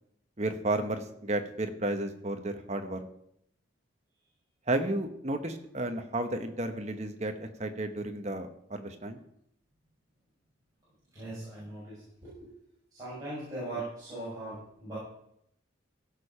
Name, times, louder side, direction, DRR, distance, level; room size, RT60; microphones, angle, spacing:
voice 1, 0.4-3.0 4.7-9.2, right 2 dB, 35° right, 6 dB, 1.2 m, -32 dB
voice 2, 11.1-12.5 12.9-15.0, right 2 dB, 20° right, -10 dB, 6.2 m, -40 dB
16.0 x 6.8 x 5.6 m, 0.73 s
head